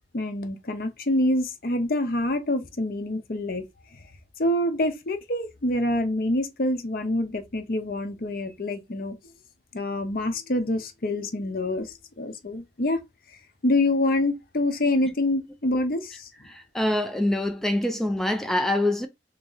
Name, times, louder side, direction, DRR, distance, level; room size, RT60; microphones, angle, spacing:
voice 1, 0.1-3.6 4.4-9.1 9.7-13.0 13.6-16.3, left 1 dB, 55° left, 0.7 m, -26 dB
voice 2, 16.5-19.1, left 1 dB, ahead, 0.4 m, -25 dB
2.9 x 2.8 x 3.8 m
head